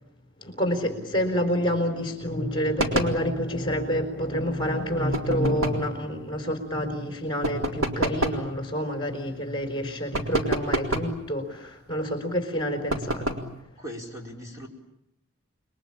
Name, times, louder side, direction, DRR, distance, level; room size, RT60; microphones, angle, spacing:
voice 1, 0.4-13.4, equal, 25° left, 5 dB, 4.2 m, -28 dB
sound 1, 2.8-3.2 5.1-5.9 7.4-8.5 10.1-11.2 12.9-13.5, right 1 dB, 85° right, 3.8 m, -28 dB
voice 2, 13.8-14.7, equal, 15° right, 0 dB, 4.8 m, -39 dB
29.0 x 22.0 x 8.8 m, 0.83 s
head